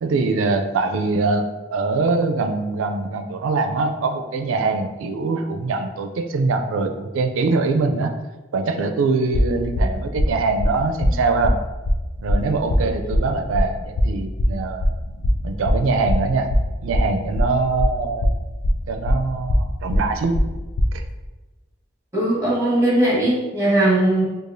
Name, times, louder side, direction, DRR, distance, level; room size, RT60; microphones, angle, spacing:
voice 1, 0.0-8.1 8.5-11.6 12.2-15.0 15.4-16.5 16.8-18.3 18.9-20.4 20.9-21.0, right 3 dB, 85° right, 7 dB, 0.4 m, -23 dB
sound 1, 9.3-21.0, equal, 90° left, 0.4 m, -21 dB
voice 2, 22.1-24.2, right 1 dB, 15° right, -6 dB, 1.3 m, -19 dB
4.7 x 2.4 x 2.6 m, 1.2 s
head